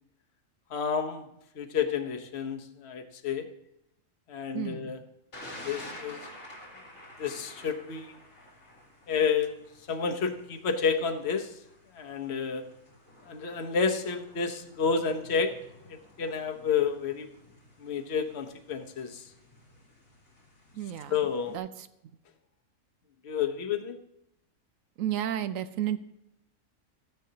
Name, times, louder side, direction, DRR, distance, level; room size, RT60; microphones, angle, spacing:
voice 1, 0.7-1.2 1.6-3.5 4.3-5.0 5.6-6.2 7.2-8.1 9.1-9.5 9.9-11.5 11.9-12.6 13.3-15.5 15.9-17.3 17.8-19.2 21.1-21.6 23.2-24.0, left 6 dB, 55° left, 5 dB, 1.2 m, -30 dB
voice 2, 4.5-4.9 20.7-21.9 25.0-26.0, right 11 dB, 80° right, 12 dB, 1.1 m, -33 dB
Thunder, 5.3-21.6, left 1 dB, 90° left, 3.0 m, -51 dB
14.5 x 10.0 x 2.8 m, 0.82 s
omnidirectional pair, 1.4 m